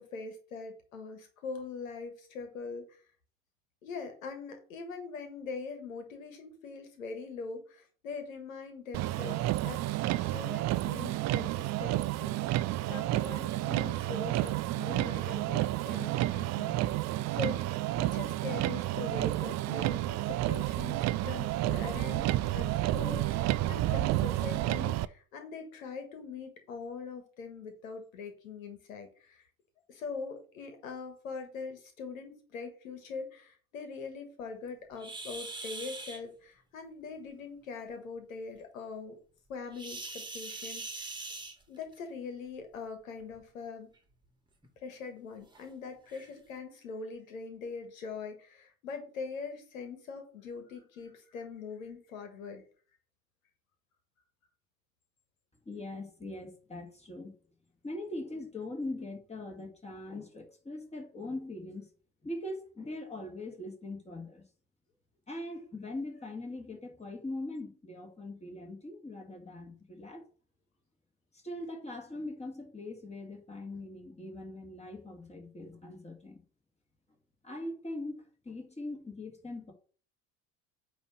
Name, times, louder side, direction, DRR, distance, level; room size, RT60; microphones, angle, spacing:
voice 1, 0.0-3.0 3.8-12.4 12.8-29.4 29.9-39.2 39.5-41.3 41.7-43.9 44.8-52.6, left 4 dB, 75° left, 1.6 m, -42 dB
Motor vehicle (road), 8.9-25.1, right 15 dB, 40° right, 0.5 m, -30 dB
sound 1, 35.0-36.2 39.7-42.0 43.2-43.4 44.0-44.1 44.6-44.7 45.5-45.6 46.1-46.3, right 3 dB, 10° right, 2.1 m, -42 dB
voice 2, 55.7-57.3 57.8-61.9 62.2-64.4 65.3-70.3 71.3-76.4 77.4-79.7, left 2 dB, 15° left, 2.9 m, -41 dB
9.2 x 3.3 x 6.4 m
figure-of-eight pair, 65°, 40 cm